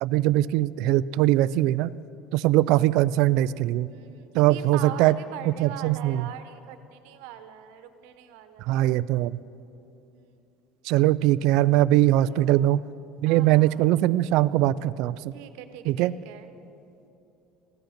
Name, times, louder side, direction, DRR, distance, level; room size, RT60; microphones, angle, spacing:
voice 1, 0.0-1.9 2.3-3.9 4.3-5.2 5.5-6.3 8.7-9.4 10.9-12.8 13.2-15.2 15.9-16.1, right 15 dB, 55° right, 18 dB, 0.3 m, -21 dB
voice 2, 3.8-8.8 10.1-10.4 12.1-12.7 13.2-14.0 15.3-16.5, right 10 dB, 75° right, 9 dB, 1.1 m, -42 dB
15.5 x 11.5 x 6.5 m, 2.8 s
cardioid pair, 175°, 0 cm